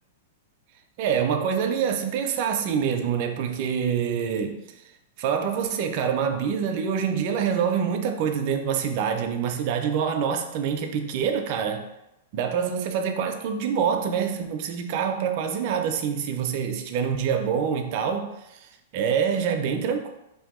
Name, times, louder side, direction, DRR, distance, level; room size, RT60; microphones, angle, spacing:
voice 1, 1.0-4.6 5.2-11.8 12.3-18.3 18.6-20.1, right 7 dB, 45° right, 5 dB, 0.4 m, -26 dB
2.7 x 2.6 x 3.6 m, 0.89 s
supercardioid pair, 155°, 0 cm